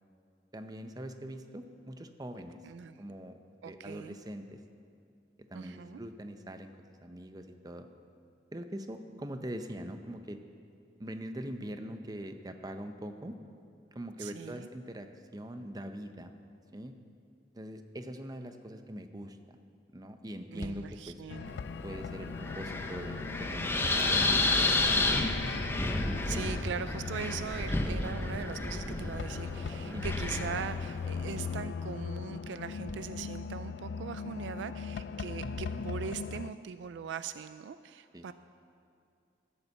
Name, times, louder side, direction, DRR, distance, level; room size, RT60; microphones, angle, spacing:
voice 1, 0.5-2.6 3.0-3.4 3.6-4.6 5.5-7.9 8.5-10.4 11.0-13.4 13.9-16.3 16.7-16.9 17.5-19.6 19.9-21.2 21.8-25.7 29.8-30.1 35.4-35.9 38.1-38.3, equal, 20° right, 7 dB, 0.7 m, -43 dB
voice 2, 2.6-3.0 3.6-4.1 5.5-6.0 14.2-14.7 20.5-21.5 26.3-38.3, right 6 dB, 85° right, 13 dB, 0.3 m, -41 dB
sound 1, 20.6-21.1 23.4-24.3 26.2-27.3 30.0-31.0 32.2-32.3 32.8-33.3 34.7-34.8 35.5-36.0 36.8-36.9, left 1 dB, 45° left, 0.9 m, -46 dB
sound 2, 21.3-36.5, left 6 dB, 70° left, 0.3 m, -39 dB
Wind, 21.5-31.6, left 2 dB, 15° left, 0.7 m, -32 dB
13.5 x 8.2 x 7.1 m, 2.4 s
head